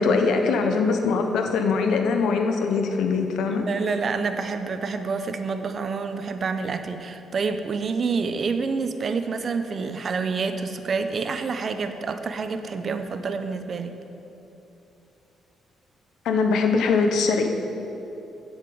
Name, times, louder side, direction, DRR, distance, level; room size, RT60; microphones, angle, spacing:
voice 1, 0.0-3.7 16.2-17.5, left 4 dB, 80° left, 5 dB, 1.1 m, -22 dB
voice 2, 3.5-13.9, right 4 dB, 45° right, 9 dB, 0.8 m, -28 dB
8.9 x 8.1 x 7.8 m, 2.9 s
cardioid pair, 90°, 0 cm